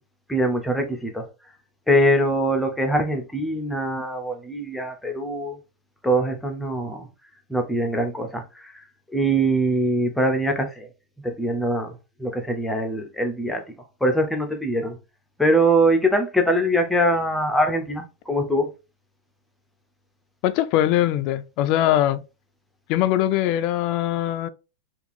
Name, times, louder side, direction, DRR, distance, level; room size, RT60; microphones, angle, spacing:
voice 1, 0.3-1.3 1.9-5.6 6.0-7.1 7.5-8.7 9.1-10.9 11.2-11.9 12.2-13.6 14.0-15.0 15.4-18.7, right 1 dB, 5° left, 0.7 m, -22 dB
voice 2, 20.4-22.2 22.9-24.5, left 13 dB, 45° left, 0.4 m, -21 dB
2.8 x 2.4 x 4.1 m
supercardioid pair, 145°, 0 cm